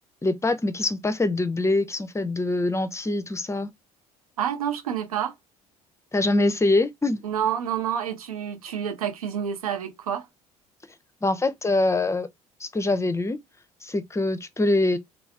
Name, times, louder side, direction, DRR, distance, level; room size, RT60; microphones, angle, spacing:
voice 1, 0.2-3.7 6.1-7.2 11.2-12.3 12.6-13.4 13.8-15.0, left 2 dB, 15° left, 0.6 m, -24 dB
voice 2, 4.4-5.3 7.2-10.3, right 9 dB, 80° right, 0.6 m, -28 dB
3.4 x 2.4 x 3.3 m
figure-of-eight pair, 55°, 18 cm